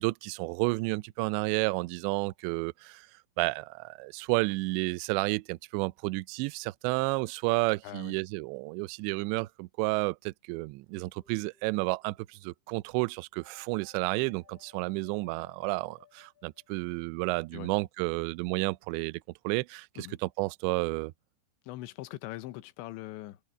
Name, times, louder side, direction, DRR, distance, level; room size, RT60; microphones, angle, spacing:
voice 1, 0.0-3.1 3.4-21.1, right 24 dB, 80° right, 2.7 m, -31 dB
voice 2, 7.8-8.2 17.5-17.7 20.0-20.2 21.6-23.4, left 16 dB, 80° left, 3.2 m, -41 dB
sound 1, 11.2-11.9 13.4-17.2, left 4 dB, 25° right, 4.2 m, -61 dB
omnidirectional pair, 5.4 m